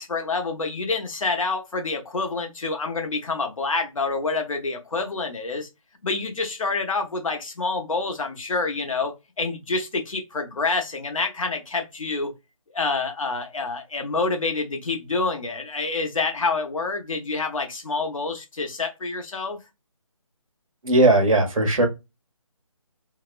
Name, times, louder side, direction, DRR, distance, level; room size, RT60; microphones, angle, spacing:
voice 1, 0.0-5.7 6.0-12.3 12.7-19.6, left 3 dB, 70° left, 0.8 m, -27 dB
voice 2, 20.8-21.8, right 2 dB, 70° right, 0.9 m, -18 dB
2.7 x 2.1 x 2.3 m
figure-of-eight pair, 160°, 18 cm